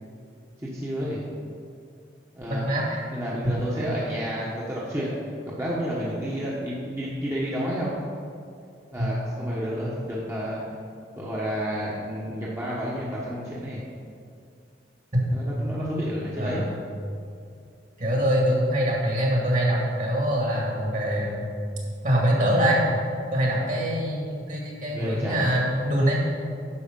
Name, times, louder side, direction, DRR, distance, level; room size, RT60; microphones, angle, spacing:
voice 1, 0.6-1.2 2.3-2.7 3.1-5.2 5.5-8.0 8.9-10.6 11.2-13.8 15.3-16.6 24.8-25.5, equal, 15° right, -7 dB, 1.1 m, -30 dB
voice 2, 2.5-3.0 3.8-3.9 9.0-9.1 15.1-15.2 16.4-16.7 18.0-21.5 22.0-22.8 23.3-26.2, equal, 45° right, -2 dB, 2.1 m, -24 dB
9.8 x 6.3 x 5.3 m, 2.4 s
head